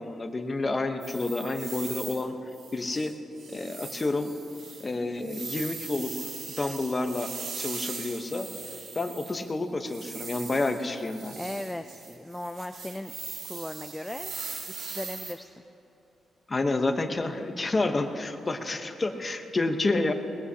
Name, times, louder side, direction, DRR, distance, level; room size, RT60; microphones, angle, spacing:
voice 1, 0.0-2.3 2.7-3.1 3.5-4.3 4.8-6.1 6.5-7.3 7.6-8.5 8.9-11.4 16.5-20.1, left 2 dB, 20° left, 6 dB, 0.9 m, -29 dB
sound 1, 1.0-2.3 2.5-3.1 3.4-9.5 9.8-15.3, right 4 dB, 60° right, 1.8 m, -40 dB
voice 2, 11.4-13.1 13.4-14.3 14.7-15.6, left 1 dB, 5° left, 7 dB, 0.4 m, -37 dB
21.0 x 20.0 x 2.8 m, 2.9 s
wide cardioid pair, 155°, 0 cm